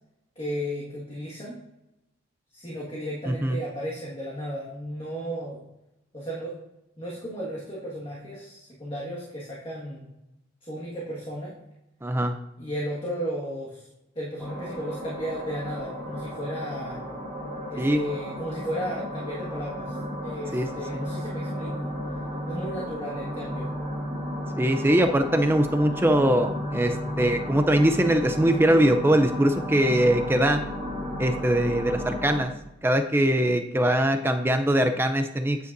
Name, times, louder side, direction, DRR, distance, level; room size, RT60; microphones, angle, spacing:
voice 1, 0.3-1.6 2.5-5.6 6.1-6.5 7.0-10.1 10.6-11.5 12.6-13.9 14.1-17.0 17.7-21.9 22.5-23.7, equal, 25° left, -5 dB, 1.7 m, -34 dB
voice 2, 3.3-3.6 12.0-12.4 17.8-18.0 20.5-20.7 20.9-21.1 24.6-30.6 31.2-32.5 32.8-35.6, right 1 dB, 10° right, 7 dB, 0.4 m, -22 dB
sound 1, 14.4-32.4, equal, 5° left, 3.5 m, -33 dB
9.5 x 9.0 x 2.6 m, 0.89 s
head